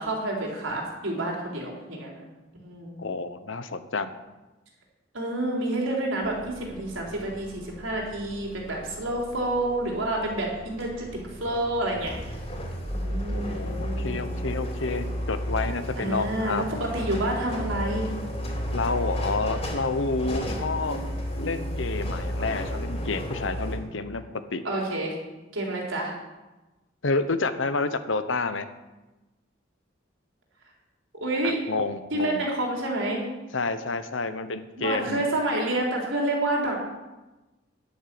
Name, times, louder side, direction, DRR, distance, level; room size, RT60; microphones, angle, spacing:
voice 1, 0.0-2.2 2.6-3.0 5.1-11.1 11.3-12.1 12.9-14.2 15.9-18.1 20.2-20.5 24.6-25.2 25.5-26.1 31.2-31.6 32.1-33.2 34.8-36.9, right 1 dB, 85° right, -1 dB, 3.9 m, -29 dB
voice 2, 3.0-4.2 13.3-16.8 18.7-21.0 21.4-24.7 27.0-28.7 31.4-32.5 33.5-35.2, left 3 dB, 75° left, 11 dB, 1.0 m, -29 dB
sound 1, 6.2-23.8, equal, 30° left, 3.2 m, -33 dB
11.0 x 10.0 x 7.7 m, 1.1 s
head